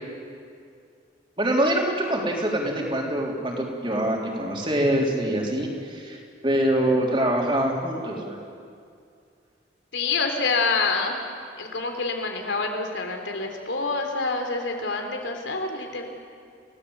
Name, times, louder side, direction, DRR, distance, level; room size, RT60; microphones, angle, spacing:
voice 1, 1.4-6.2 6.4-8.4, right 1 dB, 25° right, -1 dB, 3.8 m, -24 dB
voice 2, 9.9-11.2 11.6-16.0, left 3 dB, 85° left, 4 dB, 3.6 m, -27 dB
29.0 x 18.0 x 8.2 m, 2.3 s
head